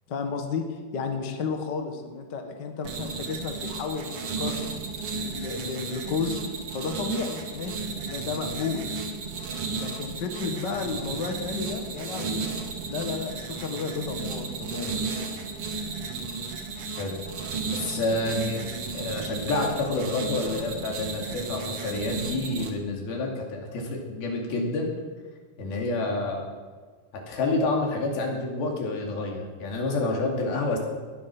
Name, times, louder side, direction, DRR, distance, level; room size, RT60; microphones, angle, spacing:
voice 1, 0.1-4.7 5.1-6.4 6.7-8.9 9.7-12.5 12.8-15.0, left 5 dB, 45° left, 5 dB, 1.4 m, -32 dB
sound 1, 2.8-22.7, right 4 dB, 55° right, 1.8 m, -34 dB
voice 2, 17.7-18.6 18.9-24.9 25.6-26.5 27.3-30.8, left 2 dB, 80° left, 0 dB, 4.5 m, -28 dB
19.5 x 11.5 x 6.1 m, 1.5 s
omnidirectional pair, 4.3 m